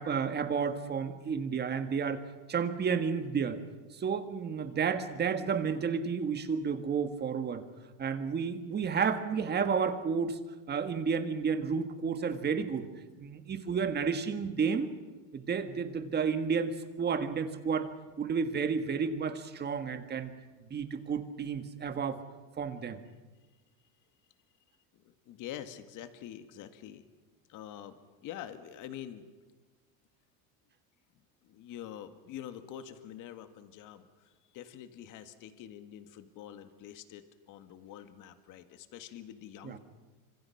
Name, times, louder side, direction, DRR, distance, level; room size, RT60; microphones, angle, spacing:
voice 1, 0.0-2.2 2.5-3.6 3.9-7.6 8.0-10.4 10.7-12.9 13.2-14.9 15.3-17.9 18.2-20.3 20.7-22.2 22.6-23.0 39.6-39.8, right 6 dB, 25° right, 9 dB, 1.8 m, -31 dB
voice 2, 24.9-27.1 27.5-29.2 31.4-39.8, left 10 dB, 50° left, 9 dB, 2.0 m, -46 dB
27.5 x 26.0 x 5.9 m, 1.2 s
cardioid pair, 145°, 40 cm